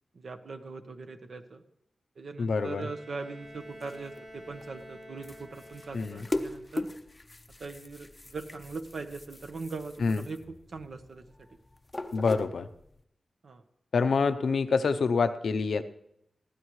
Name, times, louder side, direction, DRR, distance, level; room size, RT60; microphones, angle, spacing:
voice 1, 0.1-1.6 2.2-6.9 7.6-11.5 13.4-13.6, right 4 dB, 60° right, 7 dB, 1.1 m, -41 dB
voice 2, 2.4-2.8 5.9-6.3 10.0-10.2 12.1-12.7 13.9-15.8, left 4 dB, 80° left, 9 dB, 0.7 m, -26 dB
Bowed string instrument, 2.6-6.5, equal, 45° right, 3.0 m, -49 dB
sound 1, 3.4-13.0, left 2 dB, 20° left, 0.6 m, -41 dB
21.5 x 15.5 x 3.2 m, 0.79 s
wide cardioid pair, 150°, 0 cm